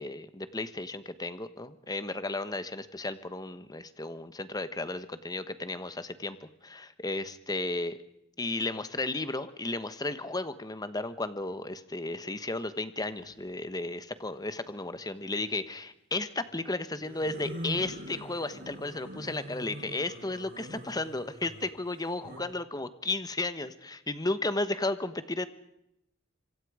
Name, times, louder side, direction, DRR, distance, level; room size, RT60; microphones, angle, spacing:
voice 1, 0.0-8.0 8.4-25.5, left 2 dB, 20° left, 12 dB, 1.2 m, -34 dB
sound 1, 13.1-13.4 15.0-15.5 16.9-22.4, equal, 50° right, 6.6 m, -43 dB
26.0 x 25.0 x 5.0 m, 0.82 s
head